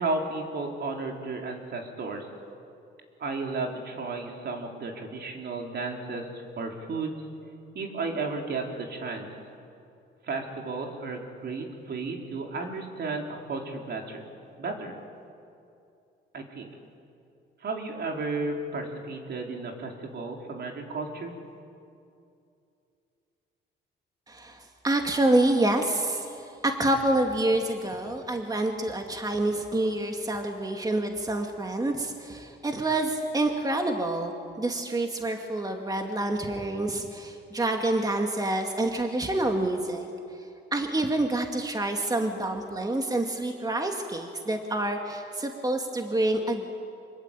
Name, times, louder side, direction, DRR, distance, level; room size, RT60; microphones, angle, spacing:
voice 1, 0.0-2.3 3.2-7.2 7.7-9.3 10.2-14.3 14.6-14.9 16.3-16.7 17.6-21.4, right 3 dB, 55° right, 2 dB, 4.2 m, -33 dB
voice 2, 24.3-34.3 34.6-40.1 40.7-46.7, right 2 dB, 20° right, 3 dB, 2.3 m, -27 dB
26.0 x 21.5 x 9.1 m, 2.6 s
cardioid pair, 90°, 20 cm